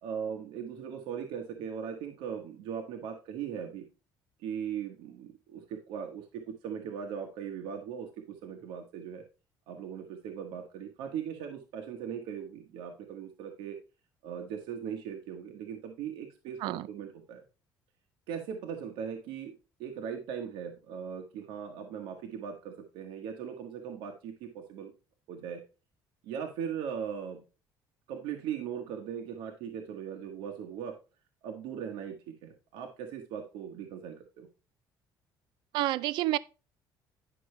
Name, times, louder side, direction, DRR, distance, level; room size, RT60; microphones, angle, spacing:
voice 1, 0.0-3.9 4.4-9.2 9.7-13.8 14.2-17.4 18.3-19.5 19.8-24.9 25.3-25.6 26.2-27.4 28.1-31.0 31.4-34.5, right 8 dB, 85° right, 1.3 m, -39 dB
voice 2, 35.7-36.4, right 16 dB, 70° right, 0.4 m, -29 dB
10.0 x 6.1 x 3.3 m
cardioid pair, 170°, 8 cm